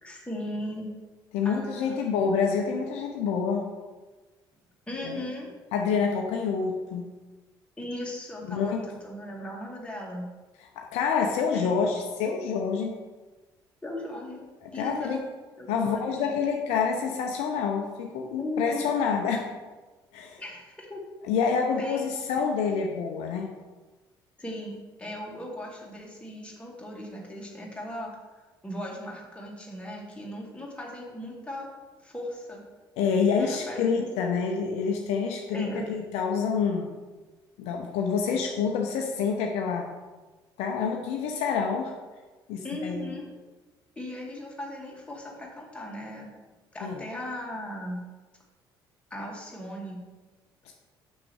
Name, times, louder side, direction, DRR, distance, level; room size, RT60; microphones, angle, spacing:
voice 1, 0.0-0.9 1.4-2.0 4.9-5.5 7.8-10.3 11.5-11.7 13.8-14.4 14.7-15.2 15.6-16.3 18.4-18.9 20.4-21.0 21.8-22.5 24.4-31.7 32.0-32.6 33.3-34.1 35.5-35.8 42.6-43.3 44.0-46.3 46.7-48.0 49.1-50.0, left 1 dB, 10° left, -2 dB, 2.1 m, -37 dB
voice 2, 1.3-3.7 5.0-5.2 5.7-7.1 8.5-8.9 10.8-12.9 14.6-15.2 15.7-19.5 20.1-20.4 21.3-23.5 33.0-36.9 37.6-39.9 40.6-42.0 42.5-43.1 46.8-47.0 50.7-50.8, left 6 dB, 60° left, 2 dB, 0.7 m, -27 dB
6.5 x 6.1 x 4.6 m, 1.3 s
figure-of-eight pair, 50°, 12 cm